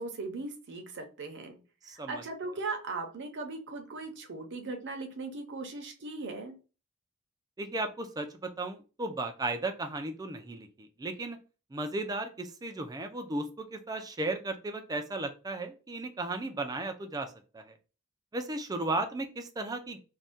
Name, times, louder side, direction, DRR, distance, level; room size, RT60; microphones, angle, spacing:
voice 1, 0.0-1.6 2.1-6.5, right 3 dB, 55° right, 5 dB, 0.7 m, -38 dB
voice 2, 1.8-2.2 7.6-11.4 11.7-17.7 18.3-20.0, right 2 dB, 15° right, 6 dB, 0.4 m, -35 dB
2.6 x 2.2 x 3.4 m, 0.34 s
head